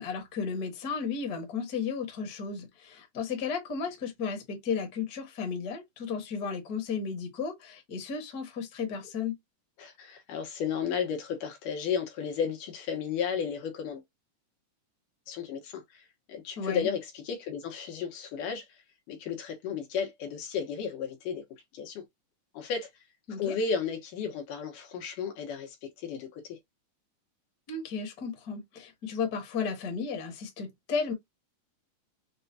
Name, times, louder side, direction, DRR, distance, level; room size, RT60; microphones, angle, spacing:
voice 1, 0.0-9.4 16.6-16.9 23.3-23.5 27.7-31.1, left 5 dB, 40° left, 1.4 m, -34 dB
voice 2, 9.8-14.0 15.3-18.7 19.1-21.4 21.7-22.0 22.5-22.9 23.4-26.6, left 7 dB, 80° left, 2.8 m, -33 dB
6.4 x 2.3 x 2.7 m
omnidirectional pair, 3.6 m